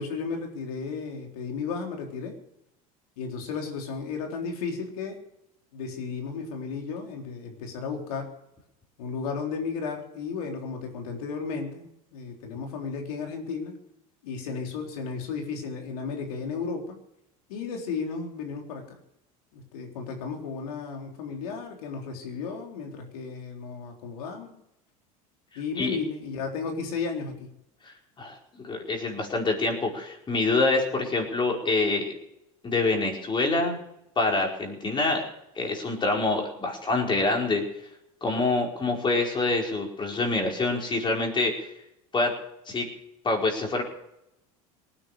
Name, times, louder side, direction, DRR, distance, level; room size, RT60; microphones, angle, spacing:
voice 1, 0.0-2.3 3.2-5.2 5.7-8.3 9.0-13.7 14.2-17.0 17.5-19.0 19.5-24.5 25.6-27.5, left 5 dB, 80° left, 2 dB, 3.9 m, -34 dB
voice 2, 27.8-32.1 32.6-33.8 34.2-35.2 35.5-37.6 38.2-41.7 42.1-42.3 42.7-42.8 43.2-43.8, left 3 dB, 25° left, 1 dB, 5.1 m, -26 dB
19.0 x 9.9 x 6.7 m, 0.82 s
supercardioid pair, 100°, 19 cm